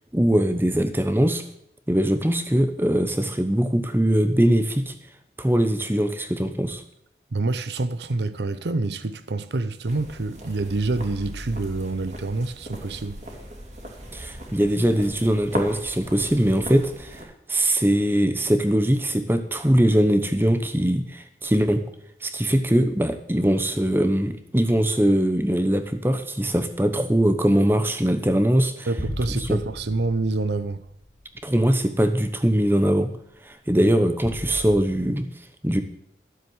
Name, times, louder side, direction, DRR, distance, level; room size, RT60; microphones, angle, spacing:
voice 1, 0.1-1.4 1.9-4.9 5.4-6.8 14.1-21.8 22.2-28.9 29.5-29.6 31.4-33.1 33.4-35.3 35.6-35.8, right 1 dB, 10° right, 0.9 m, -21 dB
voice 2, 7.3-13.2 28.9-30.8 33.8-33.9, right 3 dB, 80° right, 0.7 m, -27 dB
sound 1, 9.9-17.2, equal, 40° right, 2.5 m, -38 dB
sound 2, 29.0-31.7 32.2-32.3 34.2-34.8, left 1 dB, 20° left, 1.5 m, -36 dB
12.5 x 7.6 x 7.9 m
head